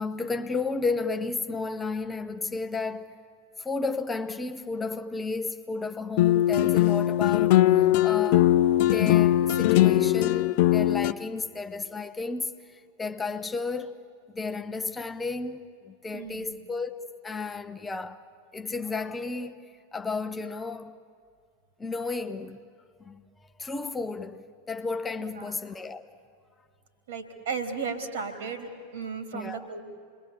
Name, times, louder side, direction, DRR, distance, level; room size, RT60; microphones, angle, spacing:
voice 1, 0.0-3.2 3.6-14.0 14.3-18.3 18.5-21.0 21.8-22.6 23.0-26.1 29.3-29.7, left 3 dB, 15° left, 0.9 m, -33 dB
sound 1, 6.2-11.1, left 14 dB, 50° left, 0.6 m, -20 dB
voice 2, 16.1-16.5 25.3-25.5 27.1-29.8, right 5 dB, 55° right, 3.6 m, -35 dB
28.5 x 22.0 x 8.6 m
figure-of-eight pair, 90°, 0 cm